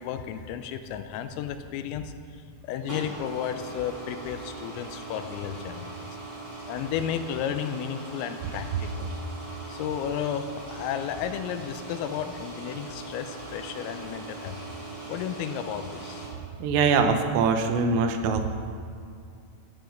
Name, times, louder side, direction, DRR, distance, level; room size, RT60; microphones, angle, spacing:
voice 1, 0.0-6.1 6.7-9.1 9.7-14.6 15.1-16.3, left 9 dB, 85° left, 9 dB, 3.4 m, -33 dB
sound 1, 2.6-16.3, right 3 dB, 5° right, 3.2 m, -40 dB
voice 2, 16.6-18.5, right 5 dB, 85° right, 6 dB, 3.6 m, -23 dB
15.5 x 10.5 x 5.3 m, 2.4 s
omnidirectional pair, 5.9 m